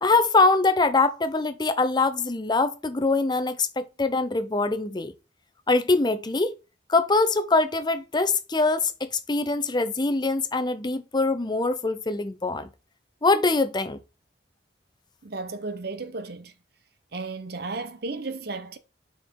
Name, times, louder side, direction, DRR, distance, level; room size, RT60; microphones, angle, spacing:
voice 1, 0.0-5.1 5.7-6.5 6.9-12.7 13.2-14.0, left 3 dB, 25° left, 0.7 m, -23 dB
voice 2, 15.2-16.5 17.1-18.8, right 3 dB, 60° right, 0.8 m, -34 dB
5.9 x 4.7 x 5.3 m
head